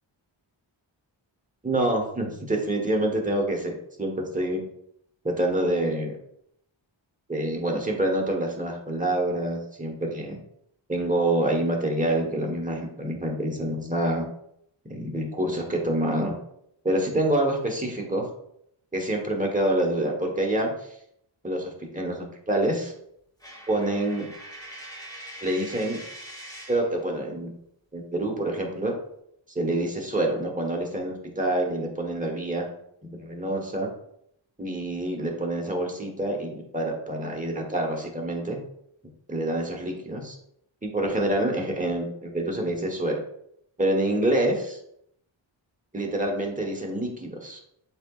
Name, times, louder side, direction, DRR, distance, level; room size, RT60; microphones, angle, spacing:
voice 1, 1.6-3.7 4.0-4.6 5.2-6.1 7.3-10.4 10.9-14.2 14.9-16.3 16.8-18.3 18.9-20.7 21.4-22.9 23.7-24.2 25.4-26.0 26.7-27.5 27.9-28.9 29.5-32.7 33.0-33.9 34.6-38.6 39.3-40.2 40.8-43.2 43.8-44.8 45.9-47.6, right 1 dB, 15° right, 1 dB, 1.1 m, -26 dB
Coin (dropping), 23.4-26.9, right 1 dB, 10° left, 1.4 m, -42 dB
7.4 x 2.9 x 2.4 m, 0.71 s
wide cardioid pair, 85°, 48 cm